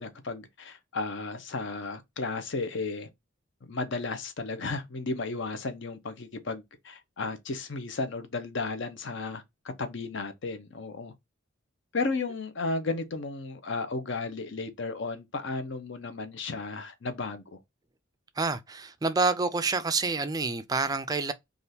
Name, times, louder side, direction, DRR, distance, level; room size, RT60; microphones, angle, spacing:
voice 1, 0.0-3.1 3.6-9.4 9.8-11.1 11.9-17.6, left 3 dB, 60° left, 0.7 m, -34 dB
voice 2, 18.4-21.3, right 4 dB, 20° right, 0.3 m, -28 dB
3.4 x 2.5 x 2.7 m
head